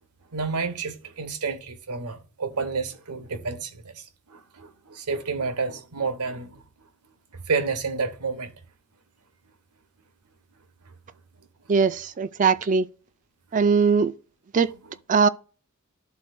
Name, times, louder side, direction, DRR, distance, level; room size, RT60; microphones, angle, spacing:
voice 1, 0.3-6.6 7.5-8.5 14.6-15.0, right 4 dB, 85° right, 1.1 m, -30 dB
voice 2, 11.7-12.9 13.5-14.1 14.5-14.7 15.1-15.3, right 5 dB, 35° right, 0.4 m, -20 dB
12.5 x 4.1 x 2.6 m
head